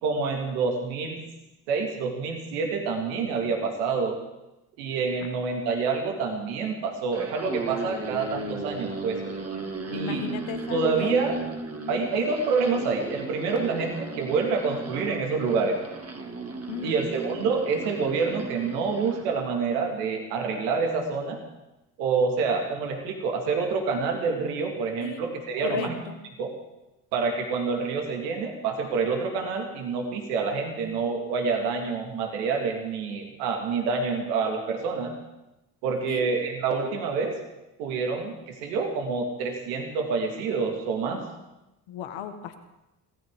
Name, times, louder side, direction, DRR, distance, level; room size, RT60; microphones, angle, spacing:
voice 1, 0.0-1.2 1.7-4.2 4.8-9.2 9.9-10.2 10.7-11.4 11.9-15.8 16.8-21.4 22.0-26.0 26.4-26.5 27.1-35.1 35.8-37.4 37.8-41.2, right 4 dB, 90° right, 2 dB, 2.1 m, -27 dB
sound 1, 7.1-19.3, right 3 dB, 30° right, 2.0 m, -36 dB
voice 2, 9.9-11.2 11.8-12.1 16.7-17.0 25.0-25.3 25.6-26.2 36.1-36.3 36.8-37.1 41.9-42.6, left 8 dB, 75° left, 6 dB, 1.6 m, -36 dB
24.0 x 16.0 x 3.7 m, 0.95 s
hypercardioid pair, 55°, 46 cm